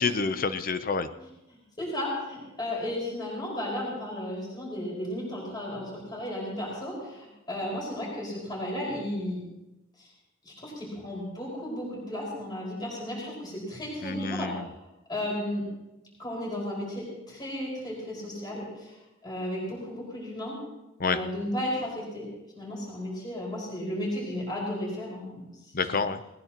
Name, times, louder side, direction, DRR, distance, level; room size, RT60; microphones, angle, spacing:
voice 1, 0.0-1.1 14.0-14.6 21.0-21.2 25.7-26.2, left 4 dB, 45° left, 10 dB, 0.7 m, -28 dB
voice 2, 1.2-9.4 10.0-10.1 10.4-14.6 15.1-15.7 16.2-18.9 19.2-20.6 21.0-22.3 22.6-25.4 25.8-25.9, left 1 dB, 20° left, -3 dB, 5.2 m, -34 dB
19.5 x 19.0 x 3.0 m, 0.97 s
head